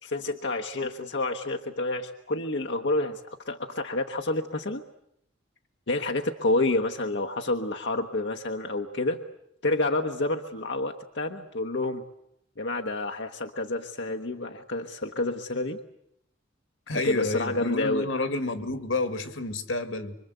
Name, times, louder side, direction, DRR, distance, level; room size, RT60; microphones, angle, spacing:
voice 1, 0.0-4.8 5.9-9.2 9.6-12.0 12.6-15.8 17.0-18.1, left 2 dB, 65° left, 1.2 m, -29 dB
voice 2, 16.9-20.2, left 2 dB, 90° left, 2.2 m, -30 dB
25.5 x 24.5 x 8.0 m
head